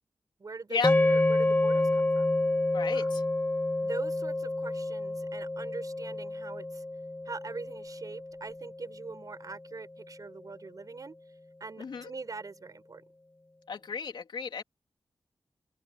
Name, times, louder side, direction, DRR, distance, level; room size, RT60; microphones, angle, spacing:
voice 1, 0.4-2.3 2.9-3.2 3.8-6.8 7.3-11.2 11.6-13.0, right 4 dB, 50° right, 5.7 m, -42 dB
sound 1, 0.8-9.2, left 2 dB, 25° left, 4.1 m, -29 dB
voice 2, 2.7-3.2 11.8-12.1 13.7-14.6, left 5 dB, 90° left, 3.5 m, -33 dB
open air
wide cardioid pair, 115°, 8 cm